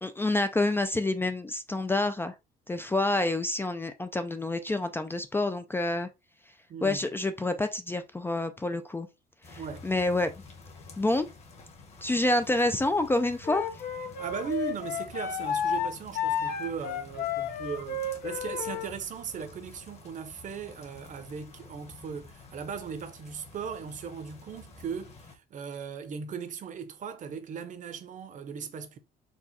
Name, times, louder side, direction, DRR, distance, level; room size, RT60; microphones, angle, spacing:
voice 1, 0.0-2.3 2.7-6.1 6.8-9.1 9.5-10.3 11.0-11.3 12.0-13.7, left 2 dB, 15° left, 0.4 m, -28 dB
voice 2, 6.7-7.1 9.6-9.9 14.1-29.0, right 6 dB, 50° right, 0.8 m, -38 dB
sound 1, 9.4-25.4, left 3 dB, 40° left, 1.4 m, -50 dB
Wind instrument woodwind instrument, 13.4-18.9, left 6 dB, 60° left, 0.8 m, -32 dB
4.6 x 2.3 x 4.1 m
cardioid pair, 110°, 17 cm